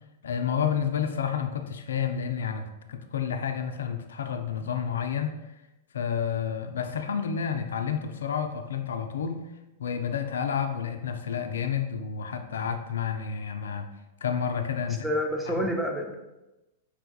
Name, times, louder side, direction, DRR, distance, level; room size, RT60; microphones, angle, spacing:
voice 1, 0.2-5.3 5.9-9.4 9.8-13.9 14.2-15.1 15.5-15.7, left 7 dB, 80° left, 6 dB, 0.3 m, -30 dB
voice 2, 14.9-16.2, equal, 5° right, 1 dB, 0.6 m, -28 dB
4.6 x 3.4 x 2.3 m, 1.0 s
hypercardioid pair, 110°, 0 cm